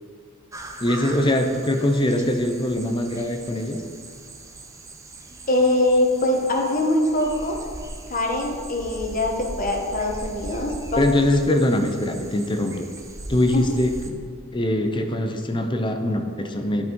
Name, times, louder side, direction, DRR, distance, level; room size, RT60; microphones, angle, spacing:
sound 1, 0.5-14.1, right 2 dB, 15° right, 0.6 m, -39 dB
voice 1, 0.8-3.8 11.0-12.9 13.3-14.2 14.5-16.9, left 1 dB, 20° left, 5 dB, 0.7 m, -22 dB
voice 2, 5.5-7.6 8.1-11.0 13.5-13.6, left 1 dB, 40° left, 1 dB, 1.3 m, -22 dB
12.0 x 5.7 x 4.7 m, 2.2 s
head